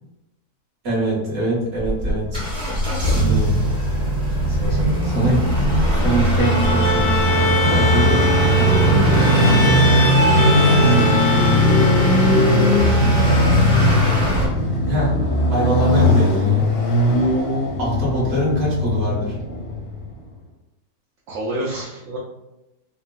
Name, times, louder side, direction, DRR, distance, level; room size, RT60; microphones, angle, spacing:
voice 1, 0.8-2.5 3.0-3.5 5.0-5.4 5.9-8.7 10.8-11.6 14.8-15.1 15.5-16.6 17.8-19.4, right 1 dB, 45° right, -6 dB, 1.2 m, -23 dB
Motor vehicle (road) / Accelerating revving vroom, 1.8-14.5, equal, 20° right, 0.8 m, -20 dB
Motorcycle, 2.0-20.1, left 1 dB, 85° left, 1.3 m, -21 dB
voice 2, 4.5-5.0 21.3-22.2, right 1 dB, 70° right, -5 dB, 0.8 m, -29 dB
Bowed string instrument, 6.4-12.7, left 2 dB, 65° left, 0.9 m, -23 dB
3.3 x 2.1 x 2.2 m, 0.93 s
omnidirectional pair, 1.8 m